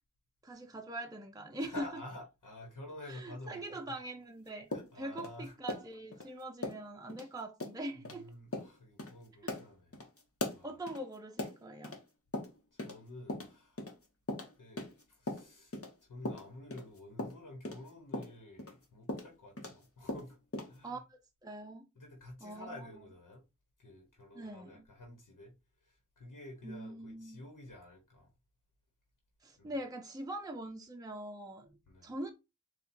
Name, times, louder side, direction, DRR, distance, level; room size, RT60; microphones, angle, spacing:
voice 1, 0.4-1.9 3.1-4.7 4.9-8.3 9.5-9.6 10.6-12.0 20.8-21.9 22.4-22.8 24.3-24.9 26.6-27.4 29.4-32.3, right 1 dB, 10° right, 0.6 m, -43 dB
voice 2, 1.6-3.8 4.7-5.5 6.2-6.4 7.9-10.0 10.5-10.8 12.7-13.9 14.6-15.7 16.0-20.4 20.7-21.0 21.9-23.4 23.8-25.5 25.8-28.3 29.6-29.8 31.9-32.1, left 1 dB, 85° left, 1.1 m, -50 dB
sound 1, 4.7-6.3 6.6-6.8 7.1-7.3 7.6-7.8 8.0-8.2 8.5-8.7 9.0-9.1 9.5-12.0 12.3-13.0 13.3-15.9 16.3-19.8 20.1-20.8, left 2 dB, 45° left, 1.2 m, -40 dB
4.2 x 2.4 x 4.2 m
wide cardioid pair, 50°, 31 cm